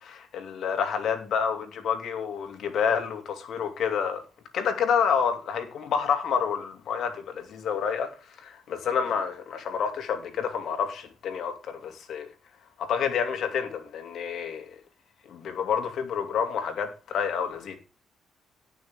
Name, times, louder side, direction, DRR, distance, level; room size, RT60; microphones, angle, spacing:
voice 1, 0.0-4.2 4.5-8.1 8.4-12.3 12.8-14.7 15.3-17.7, left 7 dB, 70° left, 2.7 m, -28 dB
17.0 x 6.3 x 3.7 m
cardioid pair, 90°, 0 cm